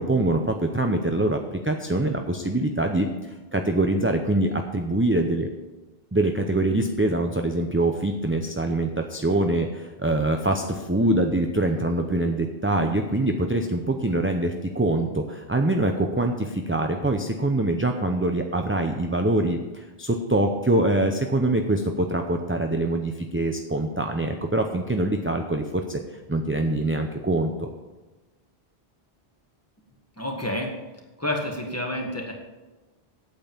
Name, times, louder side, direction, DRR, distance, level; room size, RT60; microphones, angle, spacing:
voice 1, 0.0-3.1 3.5-5.5 6.1-26.0 26.3-27.7, right 1 dB, 15° right, 4 dB, 0.6 m, -24 dB
voice 2, 30.2-30.7 31.2-32.3, left 1 dB, 15° left, 0 dB, 1.9 m, -29 dB
8.8 x 8.1 x 7.2 m, 1.2 s
omnidirectional pair, 1.1 m